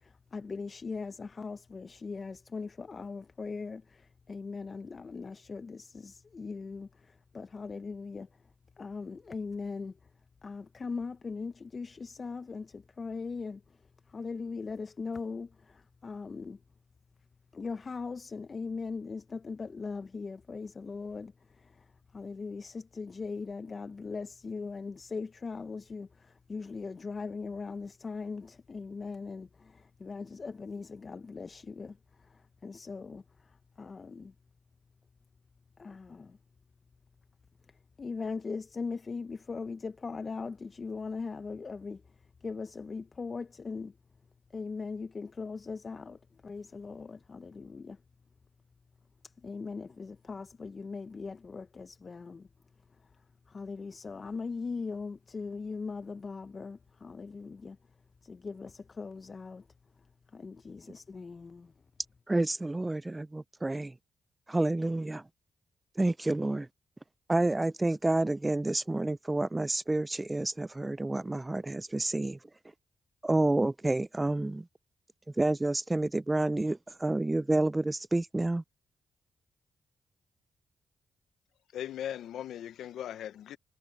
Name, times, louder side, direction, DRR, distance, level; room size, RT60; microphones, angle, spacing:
voice 1, 0.3-4.0 4.3-6.9 7.3-8.3 8.8-9.9 10.4-13.6 14.1-15.5 16.0-16.6 17.5-21.3 22.1-26.1 26.5-31.9 32.6-33.2 33.8-34.3 35.8-36.4 38.0-42.0 42.4-43.9 44.5-46.2 46.4-48.0 49.4-52.4 53.5-57.8 58.2-59.6 60.3-61.7, left 4 dB, 45° left, 0.9 m, -39 dB
voice 2, 62.3-63.9 64.5-65.2 66.0-66.7 67.3-72.4 73.2-74.6 75.4-78.6, right 2 dB, 20° right, 0.6 m, -29 dB
voice 3, 81.7-83.6, left 10 dB, 80° left, 0.8 m, -38 dB
supercardioid pair, 45°, 0 cm